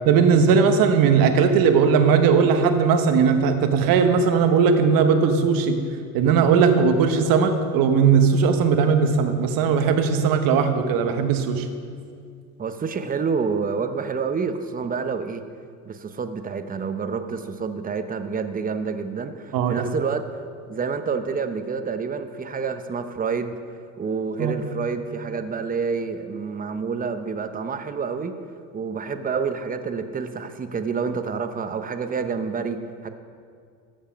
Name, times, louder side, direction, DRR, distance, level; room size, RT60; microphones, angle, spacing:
voice 1, 0.0-5.8 6.1-11.7 19.5-19.8 24.4-24.6, right 6 dB, 60° right, 7 dB, 1.1 m, -18 dB
voice 2, 12.6-15.4 15.8-20.3 20.7-23.5 24.0-28.3 28.7-33.1, right 5 dB, 20° right, 9 dB, 0.7 m, -28 dB
14.0 x 5.4 x 5.1 m, 2.2 s
supercardioid pair, 95°, 38 cm